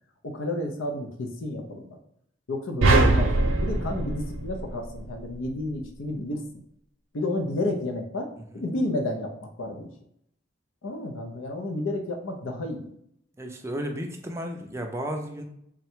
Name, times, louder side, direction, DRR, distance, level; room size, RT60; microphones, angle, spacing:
voice 1, 0.2-2.0 2.5-3.3 3.6-6.4 7.1-9.3 9.6-9.9 10.8-12.9, left 1 dB, 85° left, 3 dB, 0.6 m, -31 dB
sound 1, 2.8-5.2, right 2 dB, 85° right, 0.6 m, -22 dB
voice 2, 8.4-8.7 13.4-15.4, equal, 15° right, 3 dB, 0.4 m, -34 dB
3.7 x 2.2 x 4.3 m, 0.72 s
head